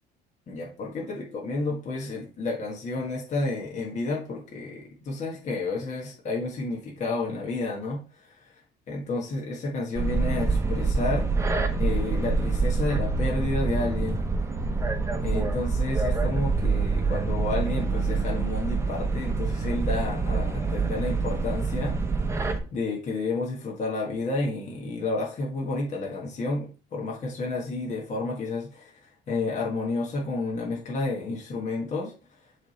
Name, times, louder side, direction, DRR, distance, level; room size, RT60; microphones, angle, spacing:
voice 1, 0.5-8.0 8.9-11.3 11.8-14.2 15.2-21.9 22.7-28.9 29.3-32.1, left 3 dB, 45° left, -2 dB, 1.5 m, -30 dB
sound 1, 9.9-22.6, right 4 dB, 15° right, 0.8 m, -26 dB
7.2 x 3.4 x 4.1 m, 0.36 s
cardioid pair, 110°, 17 cm